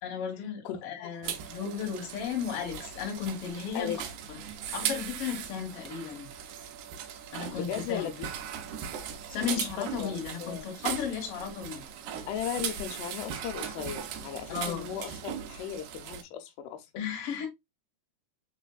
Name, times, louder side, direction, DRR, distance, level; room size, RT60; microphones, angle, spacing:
voice 1, 0.0-4.0 4.7-6.3 7.3-8.1 9.3-11.8 14.5-14.9 17.0-17.5, left 7 dB, 55° left, 1.9 m, -34 dB
voice 2, 0.6-1.4 3.7-4.0 7.5-8.3 9.6-10.7 12.3-16.9 17.2-17.5, left 9 dB, 90° left, 2.2 m, -37 dB
sound 1, 1.2-16.2, right 8 dB, 80° right, 2.1 m, -38 dB
4.4 x 4.1 x 2.2 m
omnidirectional pair, 3.7 m